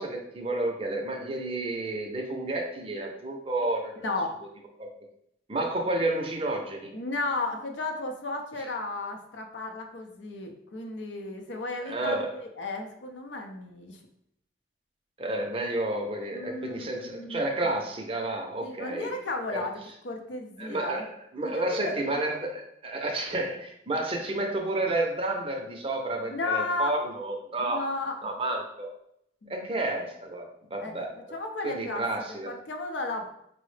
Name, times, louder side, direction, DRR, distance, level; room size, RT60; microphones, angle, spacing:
voice 1, 0.0-4.1 4.8-4.9 5.5-6.9 11.8-12.4 15.2-19.1 19.5-19.6 20.6-27.8 28.2-28.9 29.5-31.1 31.6-32.5, right 2 dB, 30° right, 2 dB, 0.5 m, -31 dB
voice 2, 4.0-4.4 6.9-14.0 16.3-17.4 18.6-21.1 21.4-21.9 26.3-27.0 27.6-28.2 29.4-29.7 30.8-31.0 31.3-33.3, left 2 dB, 75° left, 4 dB, 0.5 m, -34 dB
4.6 x 2.0 x 3.2 m, 0.74 s
head